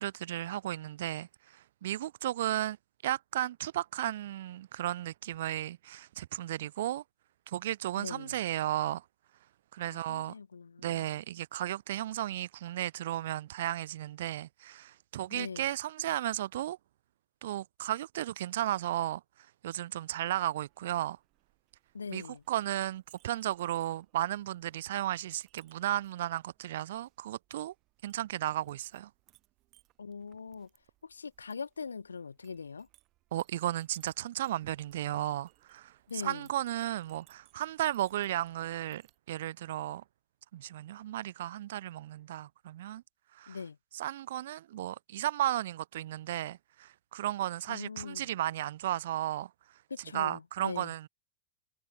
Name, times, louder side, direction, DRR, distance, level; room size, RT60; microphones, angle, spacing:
voice 1, 0.0-2.8 3.0-7.0 7.5-9.0 9.7-10.3 10.8-16.8 17.4-19.2 19.6-21.2 22.1-27.7 28.0-29.1 33.3-39.0 39.3-40.0 40.5-43.0 43.3-43.6 43.9-49.5 50.1-51.1, right 13 dB, 60° right, 0.4 m, -34 dB
voice 2, 8.0-8.4 9.8-11.2 15.3-15.7 21.9-22.4 30.0-30.7 31.0-32.9 36.1-36.5 43.5-43.8 47.7-48.3 49.9-50.9, left 5 dB, 75° left, 0.4 m, -42 dB
Chink clink, 20.6-39.2, right 18 dB, 40° right, 4.9 m, -69 dB
figure-of-eight pair, 90°, 0 cm